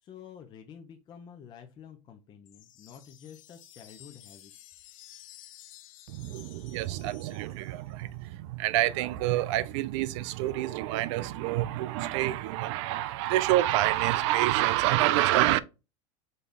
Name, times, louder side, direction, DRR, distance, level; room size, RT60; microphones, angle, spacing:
voice 1, 0.0-4.5, left 8 dB, 25° left, 0.6 m, -49 dB
sound 1, 2.5-7.9, left 13 dB, 85° left, 0.8 m, -53 dB
voice 2, 6.1-15.6, right 15 dB, 65° right, 0.5 m, -27 dB
5.2 x 2.3 x 4.0 m
supercardioid pair, 140°, 17 cm